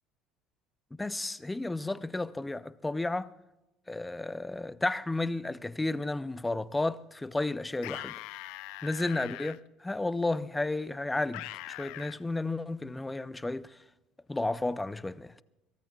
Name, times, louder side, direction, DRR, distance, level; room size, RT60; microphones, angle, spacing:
voice 1, 0.9-3.3 3.9-8.2 8.8-13.8 14.3-15.4, left 2 dB, 5° left, 0.4 m, -32 dB
sound 1, 7.8-9.6 11.3-12.2, left 17 dB, 70° left, 0.5 m, -42 dB
23.0 x 17.5 x 2.3 m
cardioid pair, 160°, 0 cm